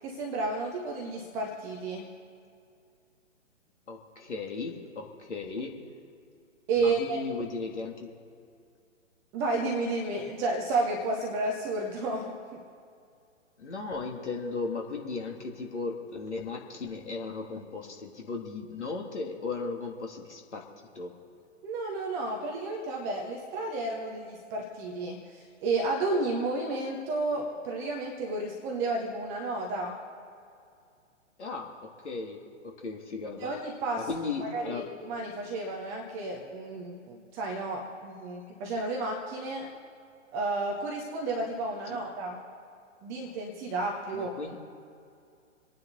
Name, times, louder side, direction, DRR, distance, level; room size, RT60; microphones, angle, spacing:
voice 1, 0.0-2.2 6.7-7.2 9.3-12.6 21.6-30.0 33.4-34.1 34.4-39.7 40.3-42.4 43.0-44.3, right 2 dB, 5° right, 0 dB, 0.5 m, -32 dB
voice 2, 3.9-5.8 6.8-8.1 13.6-20.7 20.9-21.1 31.4-33.5 34.1-34.8 41.9-42.0 44.1-44.6, left 4 dB, 65° left, 1 dB, 2.8 m, -36 dB
27.0 x 9.5 x 4.0 m, 2.3 s
figure-of-eight pair, 130°, 38 cm